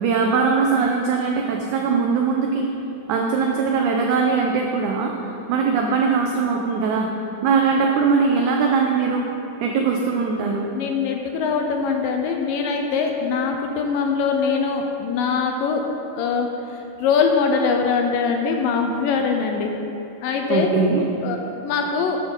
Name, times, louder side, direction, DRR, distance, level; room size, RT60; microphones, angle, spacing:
voice 1, 0.0-2.7 3.1-7.1 7.4-9.2 9.6-10.7 20.5-21.0, right 5 dB, 90° right, 1 dB, 1.7 m, -21 dB
voice 2, 10.7-15.8 16.2-19.7 20.2-20.7 21.2-22.2, left 5 dB, 80° left, 3 dB, 2.1 m, -22 dB
13.5 x 8.4 x 3.8 m, 2.9 s
omnidirectional pair, 4.3 m